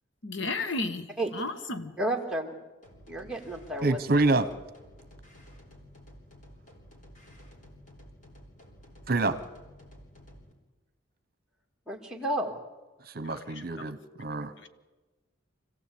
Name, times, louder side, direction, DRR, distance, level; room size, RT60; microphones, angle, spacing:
voice 1, 0.2-2.0 13.2-13.9 14.6-14.7, left 2 dB, 65° left, 1.4 m, -34 dB
voice 2, 2.0-2.6 3.1-4.0 11.9-12.5, right 1 dB, 5° right, 2.3 m, -31 dB
sound 1, 2.8-10.5, equal, 40° left, 3.9 m, -52 dB
voice 3, 3.8-4.5 9.1-9.4 13.1-14.5, right 2 dB, 50° right, 1.2 m, -26 dB
26.0 x 16.0 x 8.6 m
head